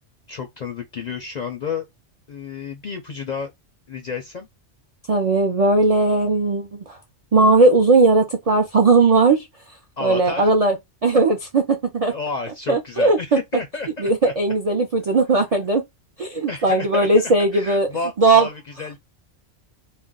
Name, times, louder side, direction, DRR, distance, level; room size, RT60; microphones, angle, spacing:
voice 1, 0.3-1.9 2.3-3.5 3.9-4.5 10.0-10.5 12.1-14.1 16.5-17.1 17.5-19.0, left 4 dB, 55° left, 0.5 m, -30 dB
voice 2, 5.1-7.0 7.3-9.5 10.0-10.8 11.0-12.1 12.7-13.4 14.0-15.8 16.2-17.9 18.2-18.5, right 3 dB, 55° right, 0.4 m, -18 dB
2.4 x 2.2 x 3.6 m
omnidirectional pair, 1.2 m